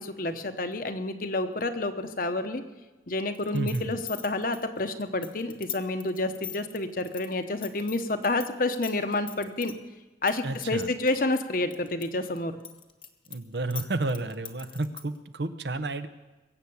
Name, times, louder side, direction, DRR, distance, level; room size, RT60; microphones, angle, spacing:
voice 1, 0.0-2.6 3.1-9.7 10.2-12.5, left 2 dB, 50° left, 8 dB, 1.0 m, -29 dB
sound 1, 3.3-8.5 8.8-9.7 10.3-12.1 12.4-15.2, left 10 dB, 30° left, 1.1 m, -40 dB
voice 2, 3.5-4.0 10.4-10.9 13.3-16.1, right 2 dB, 70° right, 11 dB, 0.9 m, -31 dB
22.5 x 8.2 x 7.1 m, 1.1 s
head